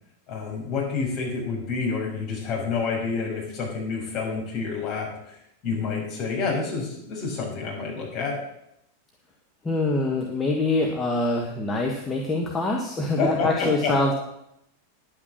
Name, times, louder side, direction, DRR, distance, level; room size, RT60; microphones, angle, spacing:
voice 1, 0.3-5.4 5.6-8.4 13.2-13.9, left 4 dB, 35° left, -2 dB, 5.7 m, -28 dB
voice 2, 9.6-14.1, left 2 dB, 15° left, -1 dB, 1.6 m, -24 dB
10.5 x 8.8 x 7.3 m, 0.79 s
figure-of-eight pair, 90°, 0 cm